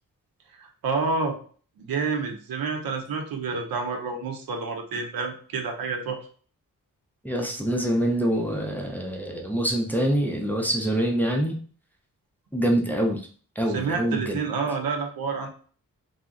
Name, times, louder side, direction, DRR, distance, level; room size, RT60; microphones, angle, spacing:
voice 1, 0.6-1.3 1.8-6.2 13.7-15.5, right 4 dB, 80° right, 4 dB, 0.6 m, -29 dB
voice 2, 7.2-11.6 12.5-13.2 13.6-14.4, right 1 dB, 5° left, 0 dB, 0.5 m, -25 dB
2.2 x 2.0 x 3.6 m, 0.43 s
cardioid pair, 70°, 35 cm